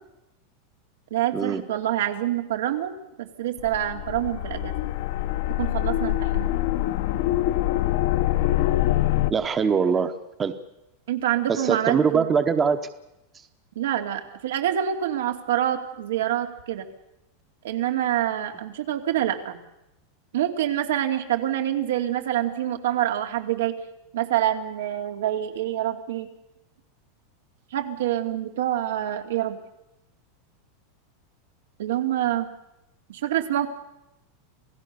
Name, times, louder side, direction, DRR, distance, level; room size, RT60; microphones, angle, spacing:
voice 1, 1.1-2.9 3.2-4.7 5.6-6.5 11.1-12.2 13.8-16.9 17.6-19.6 20.3-23.7 24.1-26.3 27.7-29.6 31.8-32.5 33.1-33.7, right 12 dB, 90° right, 5 dB, 2.6 m, -26 dB
sound 1, 3.6-9.3, left 14 dB, 55° left, 1.0 m, -24 dB
voice 2, 9.3-10.6 11.5-12.9, right 6 dB, 15° right, 10 dB, 1.0 m, -23 dB
27.5 x 17.5 x 6.9 m, 0.91 s
supercardioid pair, 165°, 0 cm